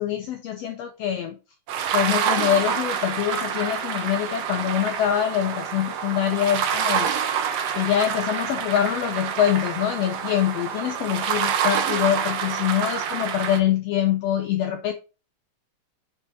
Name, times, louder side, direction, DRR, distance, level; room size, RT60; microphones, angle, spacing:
voice 1, 0.0-1.3 1.9-7.1 7.7-14.9, left 10 dB, 80° left, 1.5 m, -24 dB
sound 1, 1.7-13.6, right 8 dB, 65° right, 1.7 m, -27 dB
5.6 x 4.2 x 5.9 m
omnidirectional pair, 3.6 m